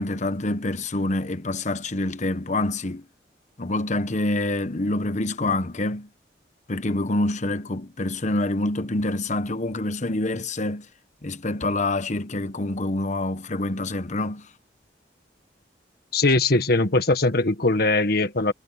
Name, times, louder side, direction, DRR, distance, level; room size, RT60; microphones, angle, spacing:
voice 1, 0.0-3.0 3.6-6.1 6.7-10.9 11.2-14.5, left 2 dB, 45° left, 1.1 m, -26 dB
voice 2, 16.1-18.5, left 2 dB, 60° left, 1.7 m, -21 dB
head